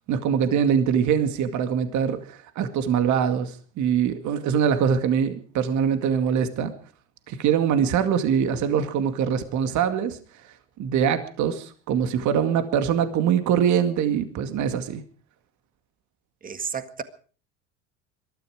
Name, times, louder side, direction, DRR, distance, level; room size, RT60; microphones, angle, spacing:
voice 1, 0.1-6.7 7.3-10.2 10.8-15.0, right 8 dB, 50° right, 2.2 m, -23 dB
voice 2, 16.4-17.0, right 6 dB, 25° right, 1.8 m, -32 dB
22.0 x 13.5 x 4.9 m
supercardioid pair, 95°, 36 cm